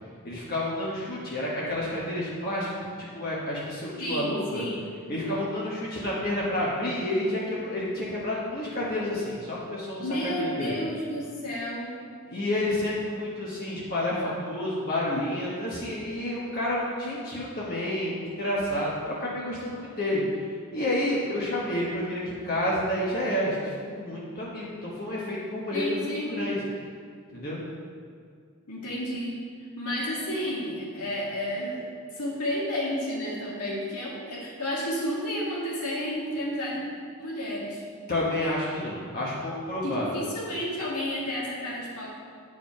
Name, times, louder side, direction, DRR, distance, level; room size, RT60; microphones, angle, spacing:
voice 1, 0.2-4.6 5.1-10.0 10.4-10.7 12.3-20.2 20.7-26.6 27.3-27.6 38.1-40.1, left 1 dB, 45° left, -6 dB, 1.2 m, -30 dB
voice 2, 4.0-4.9 10.0-12.0 25.7-26.4 28.7-29.4 29.8-36.8 37.2-37.8 39.8-42.1, equal, 85° left, -5 dB, 2.1 m, -31 dB
8.9 x 4.9 x 4.7 m, 2.2 s
head